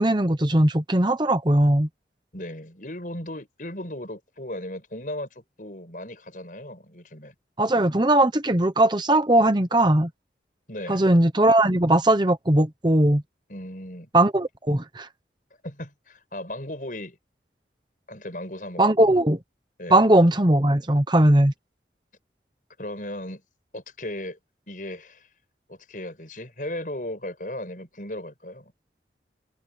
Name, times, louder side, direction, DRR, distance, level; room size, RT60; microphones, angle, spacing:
voice 1, 0.0-1.9 7.6-10.1 10.9-13.2 14.1-15.1 18.8-19.4 19.9-21.5, right 1 dB, 25° right, 1.0 m, -19 dB
voice 2, 2.3-7.3 10.7-11.1 13.5-14.1 15.6-17.2 18.1-19.1 19.8-20.0 22.8-23.4 23.7-24.4 24.7-25.3 25.7-28.7, left 1 dB, 50° left, 6.6 m, -36 dB
head